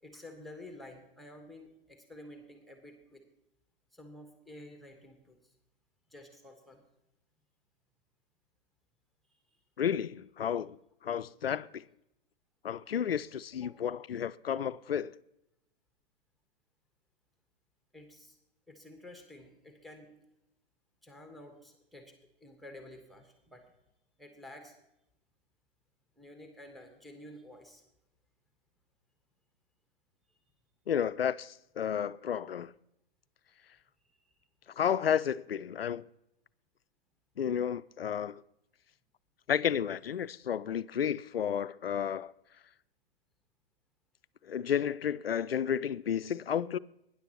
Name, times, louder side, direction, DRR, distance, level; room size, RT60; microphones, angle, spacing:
voice 1, 0.0-3.2 3.9-5.5 6.1-6.8 13.6-13.8 17.9-18.4 18.7-20.1 21.0-23.7 24.2-24.7 26.2-27.8 30.3-30.4 34.1-34.3, left 1 dB, ahead, 1.3 m, -51 dB
voice 2, 9.8-10.8 11.0-11.8 12.6-15.1 30.9-32.7 34.8-36.0 37.4-38.4 39.5-42.3 44.4-46.8, left 8 dB, 80° left, 0.5 m, -32 dB
19.0 x 10.5 x 2.9 m
figure-of-eight pair, 115°, 29 cm